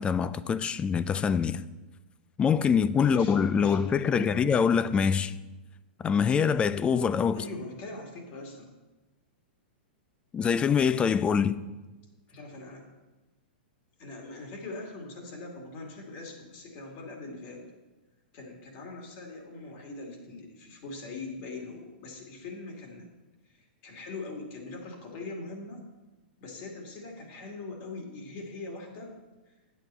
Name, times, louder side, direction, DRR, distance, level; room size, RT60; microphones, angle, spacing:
voice 1, 0.0-1.6 2.4-5.3 6.0-7.4 10.3-11.6, left 6 dB, 20° left, 0.3 m, -24 dB
voice 2, 3.0-4.8 7.3-8.7 12.3-12.9 14.0-17.6 18.3-23.1 23.5-25.8 26.4-29.1, left 3 dB, 50° left, 2.5 m, -42 dB
9.0 x 8.2 x 4.4 m
hypercardioid pair, 115°, 5 cm